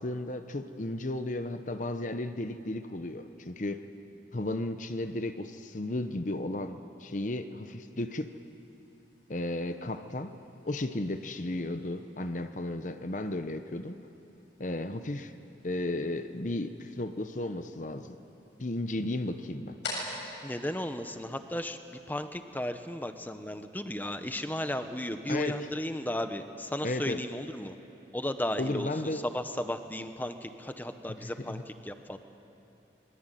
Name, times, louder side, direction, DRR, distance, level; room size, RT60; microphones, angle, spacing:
voice 1, 0.0-3.8 4.3-8.3 9.3-10.3 10.6-14.0 14.6-15.3 15.6-18.2 18.6-19.7 25.3-25.6 26.8-27.2 28.6-29.2 31.2-31.6, left 2 dB, 45° left, 9 dB, 0.9 m, -34 dB
sound 1, 8.1-21.8, left 2 dB, 75° left, 7.6 m, -48 dB
voice 2, 20.4-27.8 28.1-32.2, left 1 dB, 10° left, 8 dB, 1.0 m, -35 dB
25.5 x 22.0 x 9.2 m, 3.0 s
head